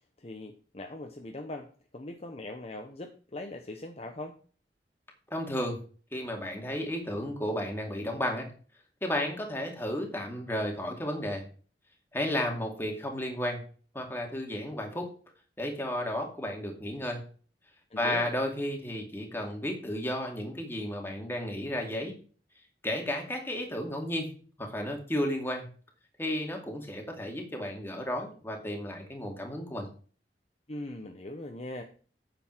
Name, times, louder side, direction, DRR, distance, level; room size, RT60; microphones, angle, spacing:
voice 1, 0.2-4.4 17.9-18.3 30.7-31.8, left 2 dB, 35° left, 4 dB, 0.9 m, -40 dB
voice 2, 5.3-5.8 6.1-8.5 9.0-11.4 12.1-13.6 13.9-15.1 15.6-17.2 18.0-22.1 22.8-24.3 24.6-25.6 26.2-29.9, left 1 dB, 15° left, 2 dB, 2.3 m, -33 dB
9.0 x 7.0 x 4.6 m, 0.40 s
head